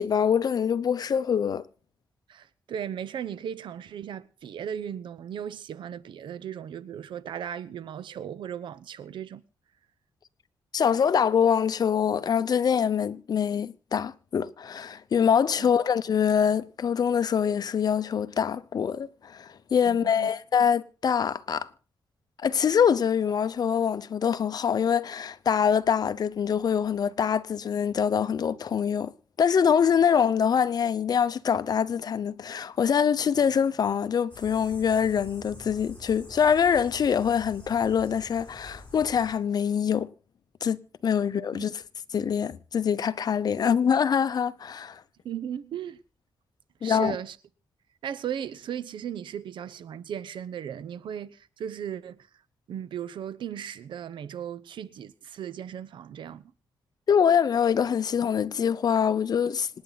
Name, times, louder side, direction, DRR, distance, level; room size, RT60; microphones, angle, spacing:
voice 1, 0.0-1.6 10.7-21.7 22.4-29.1 29.4-40.1 40.6-41.7 42.1-45.0 46.8-47.1 57.1-59.7, left 7 dB, 55° left, 0.8 m, -24 dB
voice 2, 2.3-9.4 15.6-15.7 19.9-20.3 41.5-41.7 45.2-46.0 46.8-47.4 48.0-52.2 52.7-56.4, right 9 dB, 80° right, 0.8 m, -36 dB
sound 1, 34.3-39.3, left 2 dB, 20° left, 7.8 m, -47 dB
26.5 x 9.7 x 4.0 m
cardioid pair, 105°, 8 cm